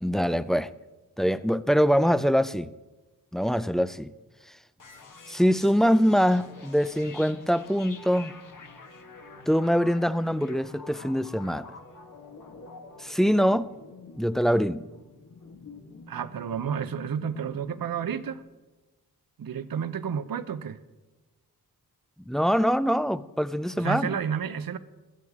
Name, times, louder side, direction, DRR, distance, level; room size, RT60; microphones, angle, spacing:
voice 1, 0.0-0.7 1.2-2.7 3.3-4.1 4.5-4.6 5.3-8.3 9.5-11.7 13.0-13.7 14.1-14.9 22.3-24.2, equal, ahead, 0.4 m, -24 dB
sound 1, 4.8-18.4, left 4 dB, 55° left, 1.6 m, -47 dB
voice 2, 16.1-18.4 19.4-20.8 23.8-24.8, right 7 dB, 65° right, 0.8 m, -31 dB
16.0 x 12.5 x 3.6 m
cardioid pair, 75°, 37 cm